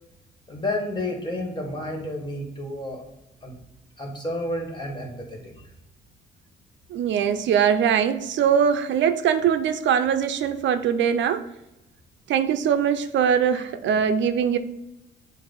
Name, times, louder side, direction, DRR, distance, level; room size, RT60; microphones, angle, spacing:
voice 1, 0.5-3.0 3.4-3.5 4.0-5.7, left 1 dB, 20° left, 1 dB, 2.0 m, -31 dB
voice 2, 6.9-11.5 12.3-14.6, right 8 dB, 70° right, 10 dB, 0.5 m, -22 dB
7.7 x 2.6 x 5.5 m, 0.90 s
cardioid pair, 90°, 20 cm